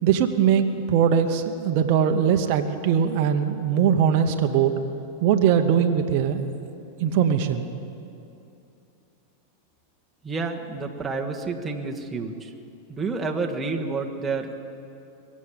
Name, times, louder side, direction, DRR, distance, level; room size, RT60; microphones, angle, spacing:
voice 1, 0.0-4.7 5.2-6.5 7.0-7.7, right 8 dB, 55° right, 5 dB, 1.0 m, -21 dB
voice 2, 10.2-12.5 12.9-14.5, right 4 dB, 15° right, 1 dB, 1.6 m, -29 dB
22.5 x 7.5 x 8.6 m, 2.7 s
hypercardioid pair, 100°, 0 cm